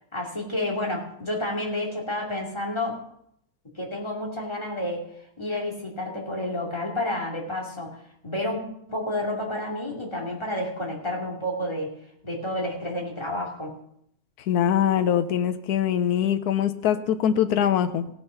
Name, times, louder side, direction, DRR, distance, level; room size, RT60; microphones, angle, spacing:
voice 1, 0.1-3.0 3.7-5.1 5.4-8.0 8.2-8.6 8.9-11.9 12.2-13.8, left 1 dB, 20° left, -2 dB, 2.7 m, -30 dB
voice 2, 14.5-18.1, left 9 dB, 85° left, 10 dB, 1.3 m, -23 dB
16.5 x 6.7 x 5.7 m, 0.72 s
omnidirectional pair, 1.6 m